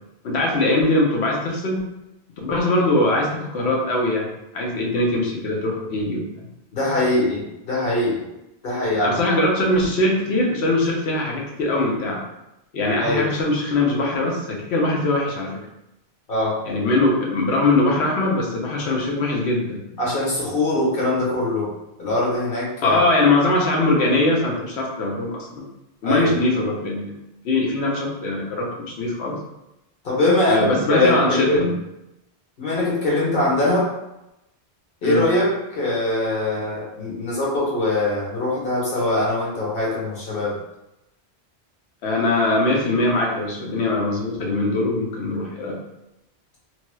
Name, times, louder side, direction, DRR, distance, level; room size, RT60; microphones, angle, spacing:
voice 1, 0.2-1.9 2.4-4.3 4.5-6.5 9.0-12.2 12.7-15.6 16.7-19.8 22.8-25.6 26.0-27.1 27.4-29.4 30.5-31.7 35.0-35.3 42.0-45.8, left 2 dB, 80° left, -2 dB, 1.0 m, -21 dB
voice 2, 6.7-8.2 8.6-9.2 13.0-13.3 16.3-16.6 20.0-21.7 22.0-23.0 26.0-26.3 30.0-31.7 32.6-33.9 35.0-40.6, left 1 dB, 60° left, -5 dB, 1.2 m, -22 dB
3.0 x 2.8 x 2.2 m, 0.89 s
omnidirectional pair, 1.1 m